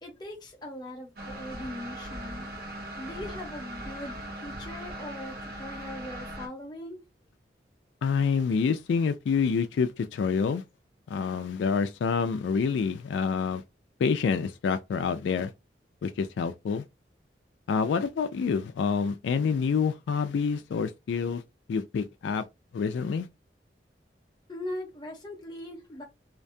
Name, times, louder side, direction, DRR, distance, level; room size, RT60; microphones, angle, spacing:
voice 1, 0.0-2.5 3.0-7.0 24.5-26.0, left 1 dB, 25° left, 0.7 m, -40 dB
sound 1, 1.2-6.5, right 1 dB, 55° right, 0.8 m, -39 dB
voice 2, 8.0-10.6 11.1-13.6 14.0-15.5 16.0-16.8 17.7-21.4 21.7-22.4 22.7-23.3, left 5 dB, 85° left, 0.3 m, -27 dB
2.5 x 2.2 x 2.6 m
head